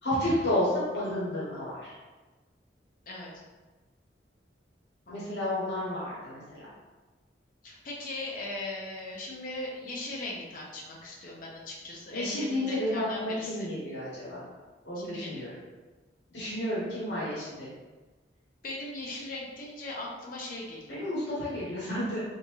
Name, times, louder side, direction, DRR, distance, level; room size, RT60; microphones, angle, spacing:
voice 1, 0.0-1.9 5.1-6.7 12.1-14.4 14.8-15.5 16.3-17.7 20.9-22.2, left 1 dB, 65° left, -8 dB, 1.3 m, -31 dB
voice 2, 5.1-5.5 7.6-13.7 14.9-15.5 18.6-21.1, left 2 dB, 50° left, -3 dB, 0.8 m, -39 dB
3.5 x 2.9 x 3.0 m, 1.2 s
head